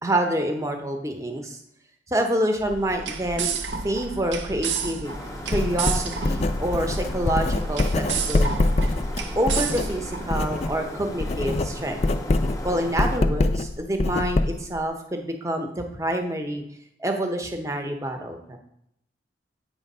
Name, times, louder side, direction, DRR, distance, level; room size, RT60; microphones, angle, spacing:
voice 1, 0.0-1.6 2.1-3.6 3.8-8.8 9.3-12.0 12.6-16.6 17.0-18.6, right 1 dB, 15° right, 4 dB, 0.8 m, -27 dB
sound 1, 2.6-10.7, right 6 dB, 75° right, 0.7 m, -32 dB
sound 2, 5.0-13.2, left 1 dB, 20° left, 0.8 m, -38 dB
Writing, 5.5-10.8 11.1-14.8, left 2 dB, 35° left, 0.4 m, -24 dB
8.2 x 3.3 x 5.4 m, 0.76 s
head